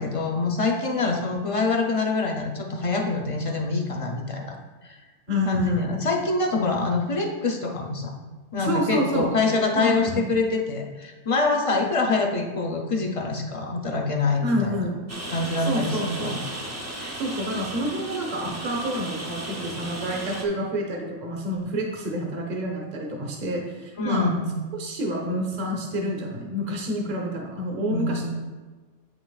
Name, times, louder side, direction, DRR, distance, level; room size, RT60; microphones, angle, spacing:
voice 1, 0.0-4.6 4.8-5.0 5.4-8.1 8.5-14.9 15.3-16.4 16.9-17.2 24.0-24.5 27.9-28.3, left 3 dB, 40° left, 2 dB, 0.5 m, -25 dB
voice 2, 5.3-5.9 8.6-9.3 9.7-10.2 14.4-15.0 15.7-16.4 17.2-24.3 24.7-28.3, equal, 40° right, 0 dB, 1.0 m, -28 dB
Rain, 15.1-20.5, right 1 dB, 20° right, 0.4 m, -35 dB
8.4 x 6.0 x 2.3 m, 1.3 s
omnidirectional pair, 1.3 m